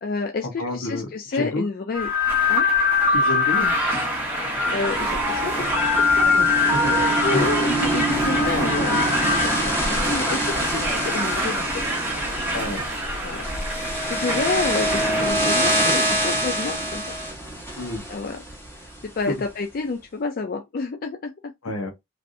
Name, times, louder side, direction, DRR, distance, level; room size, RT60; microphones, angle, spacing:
voice 1, 0.0-2.1 2.5-2.7 4.4-5.7 6.9-12.0 13.2-13.4 13.7-17.2 18.1-18.4 18.7-21.5, left 4 dB, 45° left, 0.4 m, -29 dB
voice 2, 0.6-1.1 1.3-1.6 3.1-3.7 6.2-6.5 6.8-7.0 7.3-7.5 12.5-12.8 17.8-18.0 19.3-19.4 21.6-21.9, left 2 dB, 75° left, 1.1 m, -29 dB
sound 1, 1.9-15.3, left 2 dB, 10° right, 1.0 m, -23 dB
sound 2, 4.8-19.0, right 1 dB, 10° left, 1.3 m, -26 dB
3.3 x 2.6 x 2.6 m
head